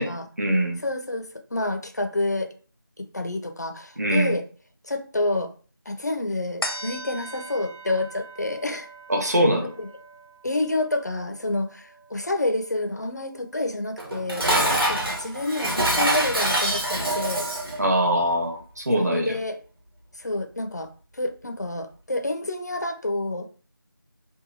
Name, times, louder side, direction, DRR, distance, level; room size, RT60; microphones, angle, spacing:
voice 1, 0.0-0.8 4.0-4.3 9.1-9.7 17.8-19.3, equal, 45° right, 1 dB, 0.6 m, -23 dB
voice 2, 0.8-2.5 3.0-4.4 4.8-5.5 5.9-8.9 9.8-9.9 10.4-14.4 14.8-17.5 19.0-19.6 20.1-23.5, left 2 dB, 50° left, 6 dB, 0.4 m, -28 dB
sound 1, 6.6-13.4 13.8-13.9, equal, 85° left, 0.6 m, -40 dB
Dishes pots and pans, 14.0-17.8, right 1 dB, 85° right, 1.1 m, -24 dB
2.7 x 2.2 x 2.7 m, 0.40 s
figure-of-eight pair, 175°, 12 cm